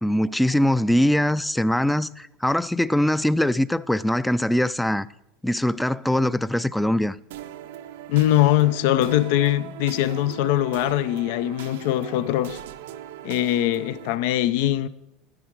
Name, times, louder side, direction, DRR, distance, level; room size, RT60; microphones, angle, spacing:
voice 1, 0.0-5.1 5.4-7.2, left 1 dB, 5° left, 0.3 m, -22 dB
sound 1, 7.3-14.2, right 11 dB, 85° right, 0.5 m, -39 dB
voice 2, 8.1-12.6 13.2-14.9, left 13 dB, 70° left, 0.4 m, -22 dB
10.0 x 9.6 x 4.6 m
supercardioid pair, 110°, 0 cm